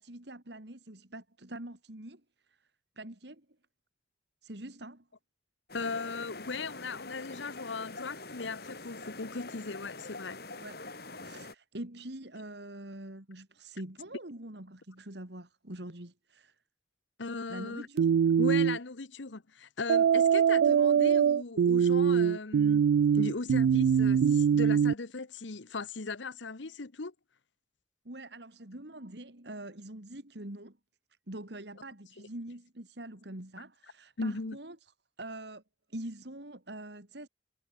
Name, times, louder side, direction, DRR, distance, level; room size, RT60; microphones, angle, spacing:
voice 1, 0.0-2.2 2.5-2.6 3.0-3.5 4.4-5.1 10.6-10.8 11.2-16.6 17.5-18.1 28.0-30.8 31.3-34.8 35.2-35.6 35.9-37.3, right 1 dB, 65° right, 2.7 m, -44 dB
voice 2, 5.7-10.4 17.2-17.9 18.4-22.8 23.1-27.1 34.2-34.6, left 3 dB, 80° left, 1.1 m, -38 dB
sound 1, 5.7-11.5, left 3 dB, 55° left, 5.1 m, -45 dB
sound 2, 18.0-18.8 19.9-24.9, right 7 dB, 90° right, 0.3 m, -23 dB
head